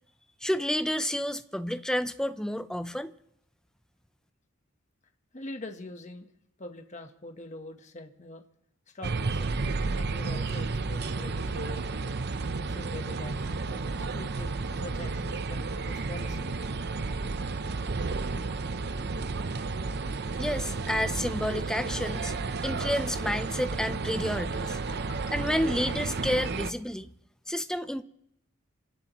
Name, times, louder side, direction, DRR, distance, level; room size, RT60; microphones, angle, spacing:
voice 1, 0.4-3.1 20.4-22.3 22.6-24.8 25.3-27.1 27.5-28.0, equal, 5° left, 0.6 m, -30 dB
voice 2, 5.3-6.3 6.6-8.4 8.9-9.5 9.9-12.1 12.7-16.5 24.2-25.5, left 2 dB, 35° left, 1.1 m, -44 dB
sound 1, 9.0-26.7, right 3 dB, 55° right, 0.7 m, -32 dB
27.0 x 17.0 x 3.0 m
head